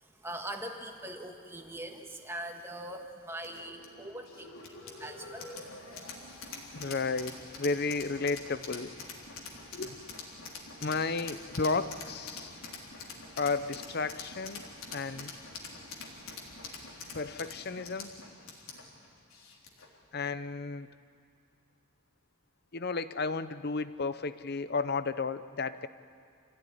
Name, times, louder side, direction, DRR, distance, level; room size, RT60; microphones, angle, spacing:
voice 1, 0.0-6.8, right 1 dB, 10° right, 3 dB, 1.6 m, -43 dB
sound 1, 3.4-20.0, left 3 dB, 85° left, 3.5 m, -45 dB
voice 2, 6.7-8.9 9.7-10.0 10.8-12.5 13.4-14.6 14.9-15.3 17.1-18.1 20.1-20.9 22.7-25.9, left 4 dB, 50° left, 13 dB, 0.7 m, -33 dB
27.0 x 16.0 x 10.0 m, 2.3 s
head